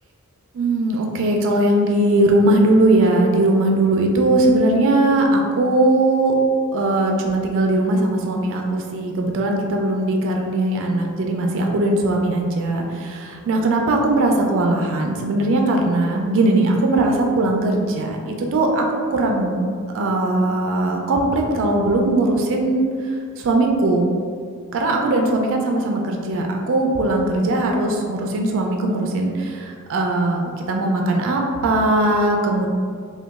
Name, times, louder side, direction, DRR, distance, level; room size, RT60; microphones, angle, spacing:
voice 1, 0.5-6.3 6.7-19.7 19.9-24.1 24.7-32.7, right 2 dB, 60° right, 1 dB, 0.3 m, -19 dB
2.9 x 2.2 x 3.4 m, 2.1 s
head